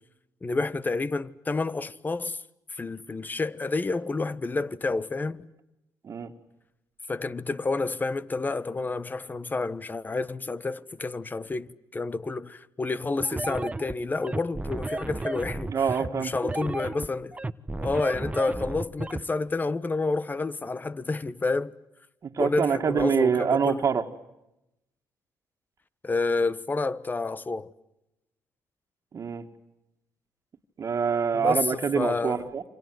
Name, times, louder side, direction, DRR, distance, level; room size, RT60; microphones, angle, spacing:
voice 1, 0.4-2.4 2.7-5.4 7.1-15.7 16.1-17.4 17.8-21.7 22.4-23.8 26.0-27.7 31.3-31.7 31.9-32.4, left 3 dB, 25° left, 1.4 m, -29 dB
sound 1, 13.2-19.2, right 2 dB, 20° right, 1.2 m, -33 dB
voice 2, 15.7-16.3 22.2-24.0 29.1-29.5 30.8-32.6, right 6 dB, 50° right, 2.1 m, -25 dB
28.5 x 26.0 x 7.9 m
cardioid pair, 75°, 7 cm